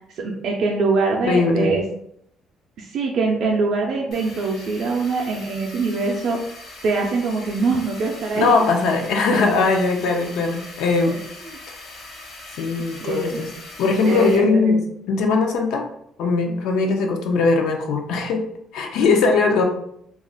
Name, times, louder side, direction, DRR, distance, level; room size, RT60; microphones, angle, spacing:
voice 1, 0.1-1.8 2.8-6.4 6.8-8.5 11.1-11.2 11.5-11.6 13.0-13.4 14.0-14.8, right 4 dB, 55° right, -1 dB, 0.4 m, -23 dB
voice 2, 1.2-1.7 8.4-11.2 12.6-13.5 13.8-15.8 16.2-18.4 18.7-19.6, left 4 dB, 80° left, 3 dB, 0.4 m, -20 dB
sound 1, 4.1-14.4, left 2 dB, 55° left, 0.9 m, -41 dB
2.3 x 2.0 x 3.7 m, 0.71 s
cardioid pair, 145°, 0 cm